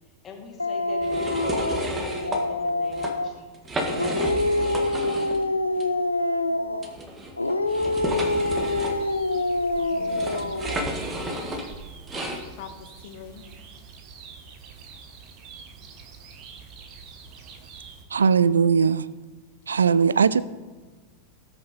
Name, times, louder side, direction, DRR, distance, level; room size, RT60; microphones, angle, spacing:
voice 1, 0.2-4.3, left 5 dB, 25° left, 2.4 m, -43 dB
Dog, 0.6-3.4 3.8-6.9 7.4-10.9, left 2 dB, 85° left, 0.6 m, -26 dB
sound 1, 1.0-2.4 2.8-3.1 3.5-5.4 5.8-5.9 6.8-12.4, right 1 dB, 20° right, 1.7 m, -31 dB
sound 2, 8.1-18.0, right 5 dB, 40° right, 1.4 m, -46 dB
voice 2, 9.8-10.5 11.2-11.4 12.1-12.3 12.6-13.4, left 9 dB, 50° left, 1.2 m, -44 dB
voice 3, 18.1-19.1 19.7-20.4, right 6 dB, 70° right, 0.4 m, -19 dB
19.0 x 6.6 x 4.2 m
figure-of-eight pair, 90°, 0 cm